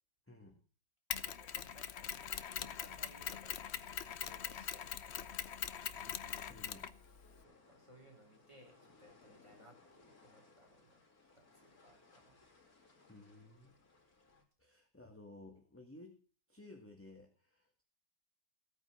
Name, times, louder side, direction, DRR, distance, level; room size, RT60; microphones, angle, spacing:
voice 1, 0.3-0.6 6.0-6.9 13.0-13.8 14.6-16.2 16.5-17.8, left 2 dB, 5° left, 2 dB, 1.7 m, -56 dB
Mechanisms, 1.1-7.4, left 8 dB, 65° left, 0.6 m, -42 dB
voice 2, 1.1-5.7 7.4-11.0 11.3-12.4, right 1 dB, 15° right, 1 dB, 4.6 m, -63 dB
sound 1, 2.5-14.4, left 3 dB, 50° left, 3.4 m, -66 dB
16.0 x 9.2 x 5.9 m, 0.39 s
omnidirectional pair, 2.1 m